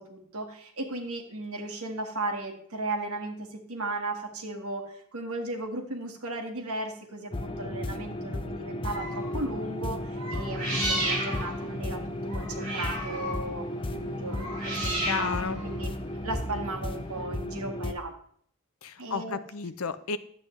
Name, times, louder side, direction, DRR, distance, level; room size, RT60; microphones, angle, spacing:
voice 1, 0.0-15.9 16.2-18.1 19.0-19.4, right 2 dB, 80° right, 4 dB, 1.6 m, -36 dB
sound 1, 7.3-17.9, left 1 dB, 25° left, 0.5 m, -34 dB
sound 2, 8.8-9.4 10.1-17.2, right 1 dB, 35° right, 4.5 m, -34 dB
voice 2, 15.0-15.6 18.8-20.2, left 5 dB, 75° left, 13 dB, 0.6 m, -32 dB
11.5 x 8.3 x 3.2 m, 0.63 s
head